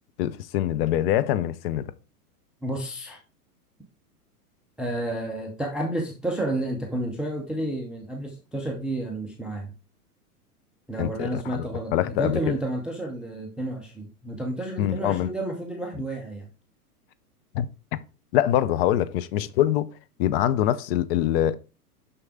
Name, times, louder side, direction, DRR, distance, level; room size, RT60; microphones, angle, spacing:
voice 1, 0.2-1.9 11.0-12.5 14.8-15.3 17.5-17.7 17.9-18.0 18.3-19.9 20.2-21.5, left 12 dB, 40° left, 0.6 m, -24 dB
voice 2, 2.6-3.2 4.8-9.7 10.9-16.5, right 1 dB, ahead, 0.3 m, -31 dB
6.3 x 6.0 x 3.5 m
figure-of-eight pair, 100°, 46 cm